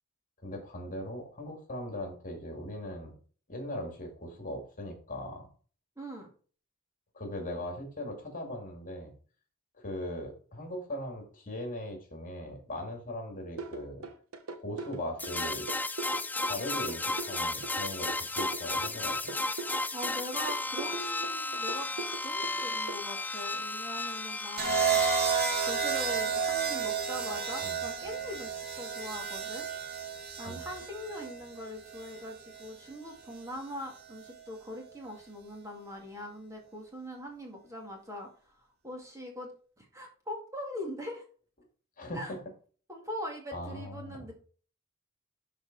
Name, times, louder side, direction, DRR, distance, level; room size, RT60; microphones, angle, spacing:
voice 1, 0.4-3.1 3.5-5.5 7.1-9.1 9.8-14.1 14.5-15.7 16.4-19.3 27.6-27.8 30.5-30.6 42.0-42.4 43.5-44.2, left 1 dB, 40° left, 3 dB, 2.4 m, -39 dB
voice 2, 6.0-6.3 19.9-21.9 22.2-25.0 25.7-29.7 30.4-38.5 38.8-39.5 39.8-41.2 42.1-42.3 42.9-44.3, left 1 dB, 15° right, 0 dB, 2.0 m, -41 dB
sound 1, 13.6-23.0, right 3 dB, 70° right, 1.1 m, -41 dB
sound 2, 15.2-25.7, left 2 dB, 10° left, 0.4 m, -34 dB
sound 3, 24.6-32.7 33.9-34.3, right 6 dB, 50° right, 2.2 m, -32 dB
12.0 x 4.2 x 4.0 m, 0.41 s
head